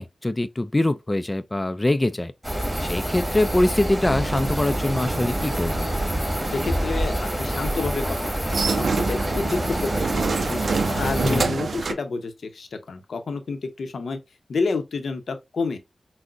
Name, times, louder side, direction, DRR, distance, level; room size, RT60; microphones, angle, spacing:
voice 1, 0.0-2.3 2.8-5.9 11.2-11.4, left 1 dB, 25° left, 0.4 m, -23 dB
sound 1, 2.4-11.4, equal, 10° right, 1.8 m, -27 dB
sound 2, 4.0-11.9, right 4 dB, 75° right, 0.4 m, -29 dB
voice 2, 6.5-10.6 10.9-14.2 14.5-15.8, left 4 dB, 85° left, 0.7 m, -29 dB
6.0 x 2.1 x 2.5 m
cardioid pair, 55°, 0 cm